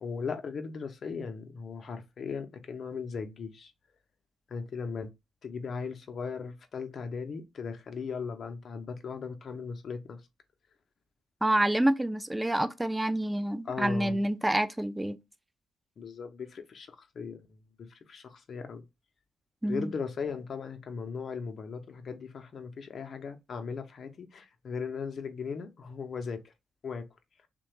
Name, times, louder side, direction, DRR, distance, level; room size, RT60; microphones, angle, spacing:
voice 1, 0.0-3.7 4.5-5.1 5.4-10.2 13.6-14.2 16.0-18.8 19.6-26.5 26.8-27.0, left 5 dB, 55° left, 0.6 m, -38 dB
voice 2, 11.4-15.2 19.6-19.9, right 1 dB, 10° right, 0.4 m, -27 dB
3.1 x 2.2 x 2.9 m
hypercardioid pair, 45°, 0 cm